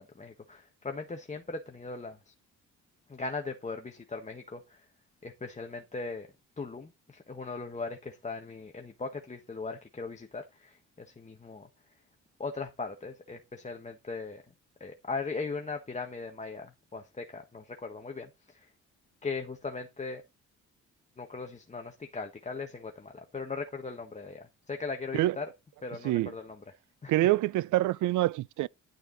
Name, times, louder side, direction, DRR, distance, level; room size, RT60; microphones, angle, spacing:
voice 1, 0.0-2.3 3.1-4.8 5.2-6.3 6.6-11.7 12.4-14.4 14.8-18.7 19.2-20.2 21.2-25.5 25.8-26.6 27.0-27.1, left 4 dB, 25° left, 1.4 m, -39 dB
voice 2, 27.1-28.7, right 16 dB, 80° right, 0.5 m, -26 dB
11.0 x 6.6 x 4.0 m
cardioid pair, 90°, 30 cm